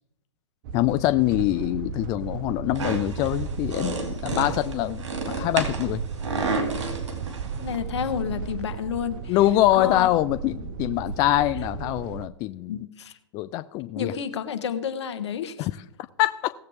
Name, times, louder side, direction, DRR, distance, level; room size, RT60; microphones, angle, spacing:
sound 1, 0.6-12.3, right 6 dB, 45° right, 0.8 m, -35 dB
voice 1, 0.7-6.0 9.3-12.8 13.3-14.1 15.6-15.7 16.2-16.5, left 15 dB, 25° left, 12 dB, 0.3 m, -24 dB
sound 2, 2.7-7.8, right 3 dB, 75° right, 2.7 m, -31 dB
voice 2, 7.6-9.4 9.7-10.1 10.9-11.0 12.7-13.1 14.0-15.7, left 8 dB, 65° left, 10 dB, 1.4 m, -30 dB
17.5 x 7.7 x 3.6 m, 0.79 s
hypercardioid pair, 125°, 15 cm